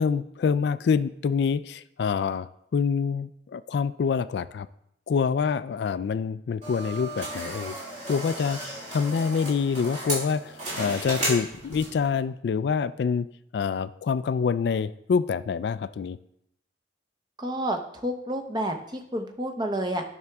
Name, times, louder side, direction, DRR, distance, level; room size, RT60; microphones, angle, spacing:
voice 1, 0.0-4.7 5.1-7.8 8.1-13.3 13.5-16.2, left 6 dB, 70° left, 15 dB, 0.3 m, -26 dB
sound 1, 6.6-12.1, right 1 dB, 45° right, 3.3 m, -34 dB
voice 2, 17.4-20.0, right 1 dB, 25° right, 4 dB, 0.8 m, -30 dB
9.5 x 5.9 x 3.5 m, 0.76 s
head